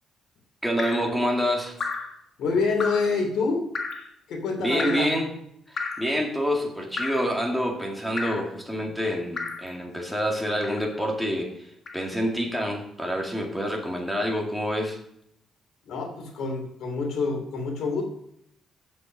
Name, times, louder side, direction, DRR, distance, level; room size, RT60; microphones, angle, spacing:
voice 1, 0.6-1.8 4.6-5.3 5.7-15.0, equal, ahead, 1 dB, 2.2 m, -27 dB
Drip, 0.8-1.1 1.8-2.2 2.8-3.1 3.7-4.1 4.8-5.1 5.8-6.1 7.0-7.3 8.2-8.5 9.4-9.7 10.6-10.9 11.9-12.0, left 4 dB, 50° left, 1.5 m, -33 dB
voice 2, 2.4-3.6 4.3-5.1 15.9-18.0, left 4 dB, 75° left, 3 dB, 2.8 m, -27 dB
7.6 x 6.8 x 6.4 m, 0.74 s
cardioid pair, 90°, 0 cm